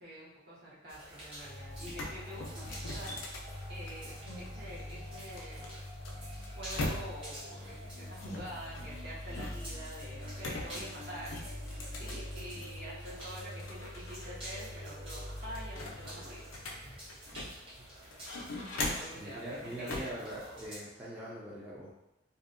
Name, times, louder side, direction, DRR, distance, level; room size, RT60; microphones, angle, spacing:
voice 1, 0.0-5.8 6.5-17.4 18.8-20.6, equal, 55° right, -8 dB, 0.9 m, -47 dB
sound 1, 0.9-20.8, right 1 dB, 25° right, 0.9 m, -50 dB
sound 2, 1.4-1.5 1.7-4.5 5.4-7.4 8.2-9.8 10.4-12.8 13.2-14.3 14.6-14.7 15.1-17.7 18.1-19.2 19.9-20.2, left 2 dB, 90° left, 0.4 m, -41 dB
sound 3, 1.4-17.8, left 1 dB, 85° right, 1.2 m, -45 dB
voice 2, 19.1-21.9, right 1 dB, 5° right, -8 dB, 0.4 m, -42 dB
2.6 x 2.1 x 2.4 m, 0.90 s
head